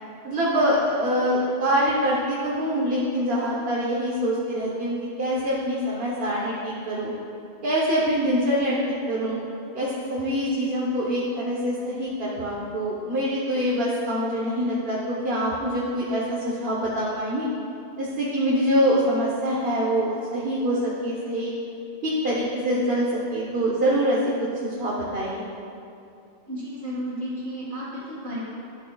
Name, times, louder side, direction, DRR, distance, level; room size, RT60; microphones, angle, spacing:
voice 1, 0.2-7.1 7.6-9.4 9.7-17.5 18.0-21.5 22.0-24.2 24.6-25.4, equal, 65° right, -5 dB, 1.3 m, -25 dB
voice 2, 26.5-28.4, equal, 85° right, -10 dB, 2.3 m, -33 dB
13.0 x 9.6 x 2.3 m, 2.6 s
omnidirectional pair, 1.1 m